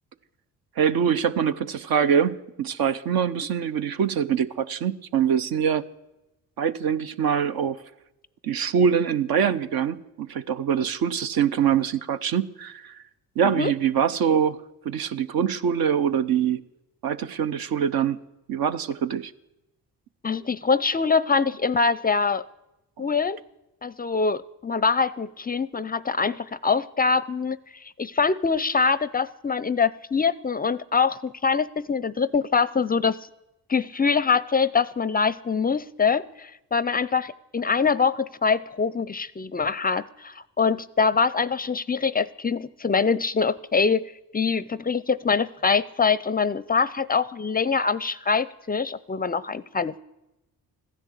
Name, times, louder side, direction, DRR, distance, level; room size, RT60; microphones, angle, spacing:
voice 1, 0.8-5.8 6.6-7.8 8.4-13.0 13.4-16.7 17.0-18.2 18.5-19.3 23.0-23.1, right 8 dB, 65° right, 0.9 m, -24 dB
voice 2, 20.2-22.4 23.0-23.4 23.8-33.2 33.7-49.9, left 5 dB, 25° left, 0.4 m, -24 dB
15.0 x 10.5 x 8.2 m
supercardioid pair, 65°, 38 cm